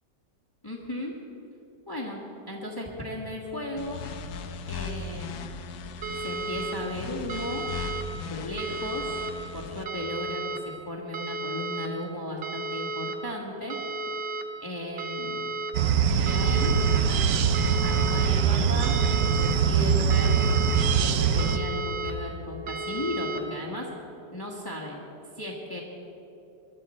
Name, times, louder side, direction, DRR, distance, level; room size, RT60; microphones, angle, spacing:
voice 1, 0.6-1.1 1.9-2.2 2.5-4.0 4.7-5.5 6.2-7.6 8.2-9.2 9.5-13.8 14.6-15.5 16.2-16.8 17.1-17.3 17.8-19.0 19.3-20.4 21.0-23.9 24.3-25.0 25.3-25.8, left 1 dB, 15° left, -2 dB, 1.5 m, -35 dB
sound 1, 3.8-9.8, left 4 dB, 65° left, 1.2 m, -38 dB
sound 2, 6.0-6.7 7.3-8.0 8.6-9.3 9.9-10.6 11.1-11.9 12.4-13.1 13.7-14.4 15.0-15.7 16.3-17.0 17.5-18.3 18.8-19.6 20.1-20.8 21.4-22.1 22.7-23.4, right 2 dB, 45° right, 0.8 m, -33 dB
sound 3, 15.7-21.6, right 7 dB, 65° right, 1.1 m, -23 dB
21.0 x 12.0 x 4.4 m, 3.0 s
omnidirectional pair, 2.0 m